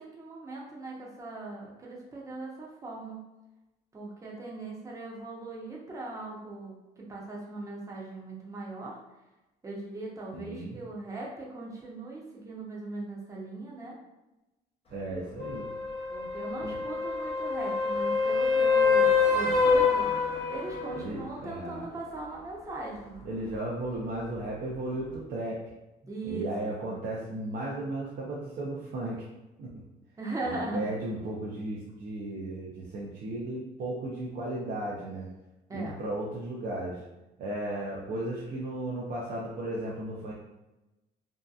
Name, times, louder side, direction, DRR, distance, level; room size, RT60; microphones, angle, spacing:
voice 1, 0.0-3.2 3.9-9.0 9.6-14.0 16.1-20.1 20.5-23.2 26.0-27.0 27.3-27.4 30.2-30.9 35.7-36.0, right 2 dB, 20° right, -3 dB, 0.7 m, -39 dB
voice 2, 10.3-10.8 14.9-15.7 16.6-16.8 20.9-21.9 23.2-25.6 26.2-29.2 29.6-29.7 30.4-35.3 35.7-37.0 37.4-40.3, right 1 dB, 60° right, -5 dB, 0.5 m, -35 dB
sound 1, 15.4-21.0 25.1-25.2, left 4 dB, 35° left, 0.6 m, -26 dB
2.7 x 2.2 x 2.3 m, 1.0 s
cardioid pair, 110°, 17 cm